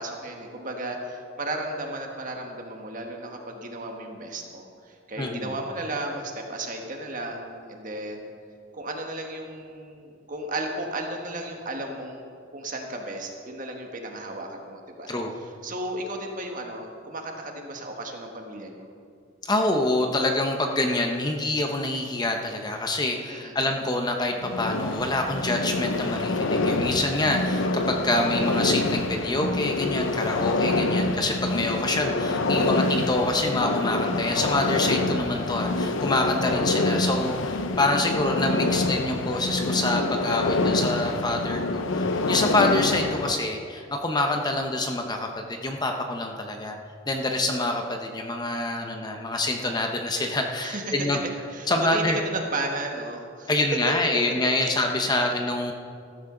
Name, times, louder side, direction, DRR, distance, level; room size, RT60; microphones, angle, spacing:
voice 1, 0.0-8.3 8.7-15.1 15.6-18.9 23.3-23.5 32.9-33.0 50.6-51.2 51.5-53.5 54.3-54.6 55.1-55.3, right 1 dB, 45° right, 2 dB, 1.6 m, -34 dB
voice 2, 5.2-5.5 15.1-15.3 19.4-46.8 47.1-51.2 51.7-52.2 53.5-55.7, left 2 dB, 20° left, 3 dB, 0.9 m, -26 dB
sound 1, 24.4-43.3, left 2 dB, 85° left, 0.7 m, -26 dB
14.0 x 13.5 x 3.9 m, 2.3 s
head